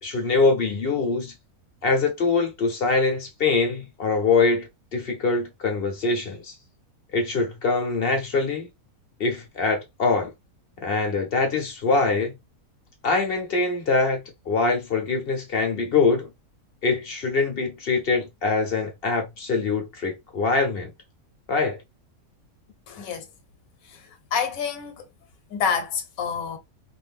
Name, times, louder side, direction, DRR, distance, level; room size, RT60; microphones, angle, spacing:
voice 1, 0.0-1.3 1.8-6.5 7.1-8.7 9.2-10.3 10.8-12.3 13.0-14.2 14.5-16.3 16.8-20.9 21.5-21.8, left 4 dB, 50° left, 0.8 m, -23 dB
voice 2, 22.9-23.3 23.9-24.0 24.3-25.0 25.5-26.6, left 6 dB, 65° left, 1.2 m, -27 dB
2.6 x 2.5 x 3.4 m
omnidirectional pair, 1.6 m